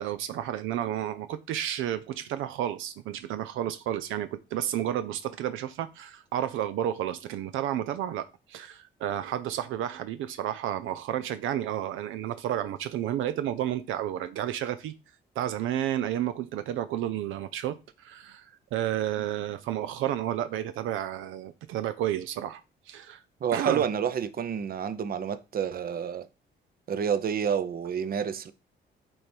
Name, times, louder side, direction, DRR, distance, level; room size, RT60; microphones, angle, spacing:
voice 1, 0.0-14.9 15.4-23.2 23.5-23.9, right 11 dB, 85° right, 0.5 m, -31 dB
voice 2, 23.4-26.3 26.9-28.5, right 7 dB, 50° right, 0.7 m, -29 dB
8.8 x 3.4 x 4.4 m
cardioid pair, 90°, 20 cm